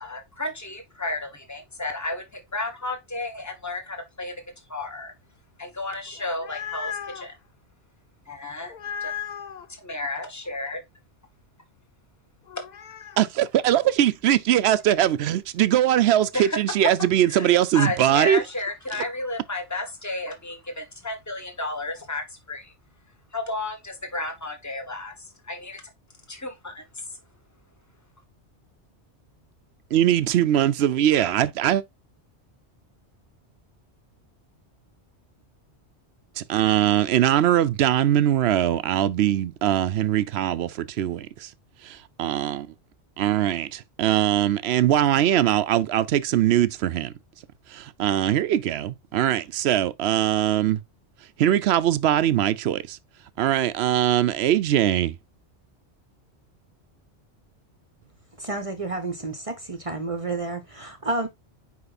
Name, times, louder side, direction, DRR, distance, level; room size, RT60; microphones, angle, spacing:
voice 1, 0.0-2.2 2.5-4.3 4.7-5.1 5.6-7.3 8.3-8.7 9.0-9.1 9.8-10.8 16.3-16.6 17.3-22.7 23.3-25.8 26.3-26.8, left 2 dB, 15° left, 1.4 m, -32 dB
sound 1, 6.1-7.3 8.7-9.7 12.5-13.2, left 8 dB, 50° left, 0.6 m, -35 dB
voice 2, 13.2-18.4 29.9-31.8 36.4-41.5 41.8-42.7 43.2-47.1 47.7-50.8 51.4-53.0 53.4-55.2, right 11 dB, 70° right, 0.8 m, -21 dB
voice 3, 58.4-61.3, right 2 dB, 35° right, 0.9 m, -30 dB
5.6 x 4.9 x 4.0 m
omnidirectional pair, 1.2 m